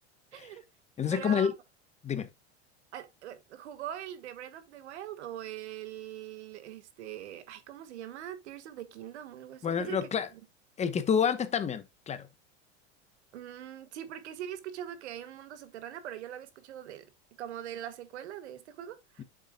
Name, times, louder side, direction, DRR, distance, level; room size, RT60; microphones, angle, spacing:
voice 1, 0.3-0.6 1.1-1.5 2.9-10.4 13.3-17.1 17.4-19.2, right 11 dB, 85° right, 1.6 m, -42 dB
voice 2, 1.0-1.5 2.0-2.3 9.6-10.3 10.8-12.3 19.2-19.3, left 7 dB, 20° left, 1.1 m, -28 dB
8.8 x 7.2 x 2.3 m
supercardioid pair, 130°, 33 cm